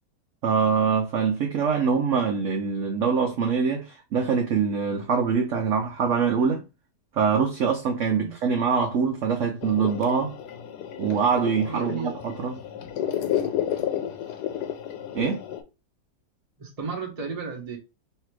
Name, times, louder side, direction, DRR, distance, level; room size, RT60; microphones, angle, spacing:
voice 1, 0.4-6.6 7.1-10.4 11.0-12.6 15.1-15.4, right 6 dB, 65° right, 0.7 m, -24 dB
sound 1, 9.6-15.6, left 10 dB, 70° left, 1.1 m, -31 dB
voice 2, 11.6-12.1 14.3-14.4 16.6-17.8, right 4 dB, 25° right, 0.9 m, -34 dB
3.3 x 2.7 x 4.6 m
omnidirectional pair, 2.0 m